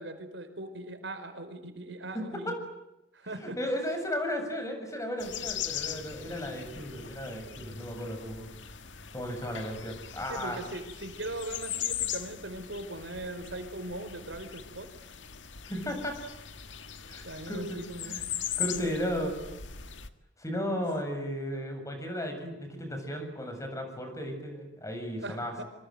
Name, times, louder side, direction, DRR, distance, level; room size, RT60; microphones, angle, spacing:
voice 1, 0.0-2.5 3.1-3.6 10.3-14.9 17.2-18.2 18.7-19.6 25.2-25.6, right 2 dB, 80° right, 9 dB, 4.7 m, -40 dB
voice 2, 2.1-2.6 3.4-8.5 9.1-10.6 15.6-16.2 17.1-18.2 18.6-19.4 20.4-25.5, equal, 20° left, 5 dB, 7.4 m, -35 dB
sound 1, 5.2-20.1, left 9 dB, 85° left, 1.9 m, -39 dB
27.5 x 26.0 x 7.9 m, 0.91 s
head